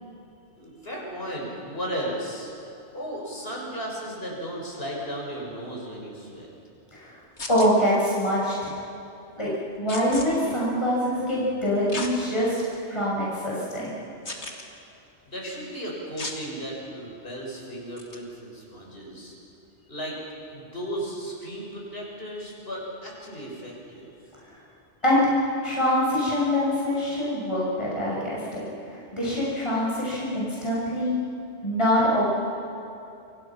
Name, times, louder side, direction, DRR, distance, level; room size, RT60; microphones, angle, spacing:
voice 1, 0.5-2.5 2.9-6.5 15.3-19.3 19.9-20.2 20.5-24.1, equal, 60° left, -2 dB, 6.5 m, -35 dB
sound 1, 7.4-7.7 9.9-10.3 11.9-12.1 12.7-12.8 14.2-14.6 16.2-16.4 18.0-18.2, left 2 dB, 85° left, 2.8 m, -34 dB
voice 2, 7.5-8.7 9.4-9.5 9.8-14.0 25.0-25.3 25.6-28.6 28.9-31.2 31.6-32.3, equal, 25° left, -6 dB, 6.3 m, -24 dB
29.5 x 26.5 x 6.0 m, 2.8 s
omnidirectional pair, 1.1 m